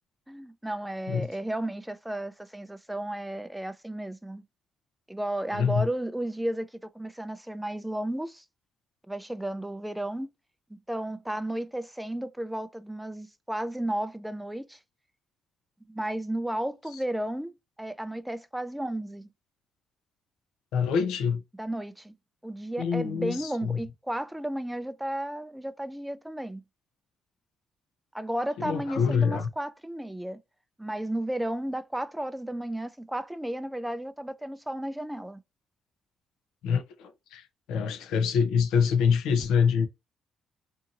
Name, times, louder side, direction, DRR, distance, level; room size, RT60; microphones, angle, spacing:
voice 1, 0.3-4.4 5.1-8.4 9.1-10.3 10.9-14.8 15.9-19.3 21.6-22.1 22.4-26.6 28.1-30.4 30.8-35.4, right 1 dB, 5° right, 0.3 m, -33 dB
voice 2, 5.5-5.9 20.7-21.4 22.8-23.8 28.6-29.5 36.6-39.9, left 6 dB, 90° left, 0.5 m, -25 dB
2.7 x 2.6 x 2.7 m
cardioid pair, 90°, 0 cm